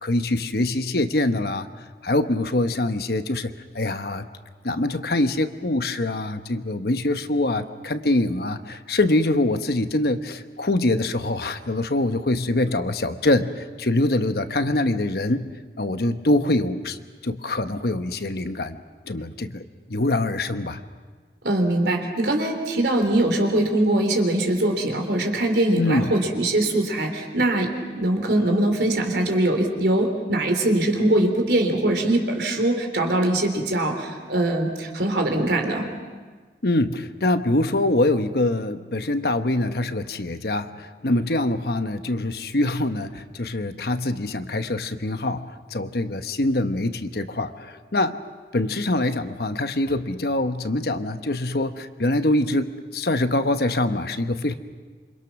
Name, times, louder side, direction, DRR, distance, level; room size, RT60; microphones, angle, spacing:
voice 1, 0.0-1.7 2.0-4.3 4.6-15.5 15.8-17.0 17.2-18.8 19.1-20.8 25.7-26.1 36.6-48.2 48.5-54.5, left 2 dB, 60° left, 9 dB, 1.1 m, -24 dB
voice 2, 21.4-35.9, right 1 dB, 70° right, 4 dB, 3.6 m, -22 dB
27.0 x 25.5 x 6.1 m, 1.4 s
head